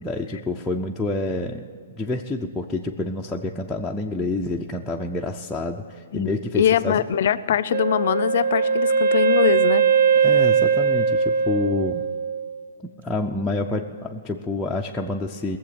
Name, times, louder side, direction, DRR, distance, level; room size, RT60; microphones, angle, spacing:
voice 1, 0.0-7.0 10.2-12.0 12.8-15.6, left 2 dB, 5° left, -3 dB, 0.5 m, -28 dB
voice 2, 6.1-9.9, left 9 dB, 55° left, 17 dB, 0.5 m, -22 dB
Wind instrument woodwind instrument, 7.7-12.6, right 6 dB, 55° right, 0.6 m, -20 dB
19.0 x 7.5 x 8.7 m, 2.1 s
hypercardioid pair, 165°, 0 cm